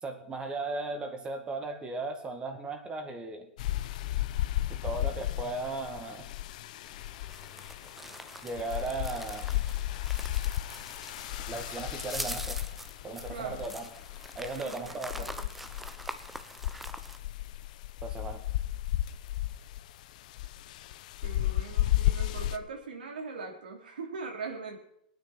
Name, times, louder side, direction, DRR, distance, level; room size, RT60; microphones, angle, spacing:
voice 1, 0.0-3.5 4.7-6.3 8.4-9.5 11.5-12.6 13.0-13.9 14.4-15.3 18.0-18.4, right 3 dB, 20° right, 6 dB, 2.1 m, -36 dB
sound 1, 3.6-22.6, left 14 dB, 60° left, 0.8 m, -34 dB
sound 2, 6.9-17.2, right 1 dB, 5° right, 0.8 m, -44 dB
voice 2, 13.3-13.7 14.6-15.5 21.2-24.8, right 4 dB, 85° right, 1 dB, 3.2 m, -41 dB
18.5 x 9.5 x 6.0 m, 0.73 s
hypercardioid pair, 125°, 5 cm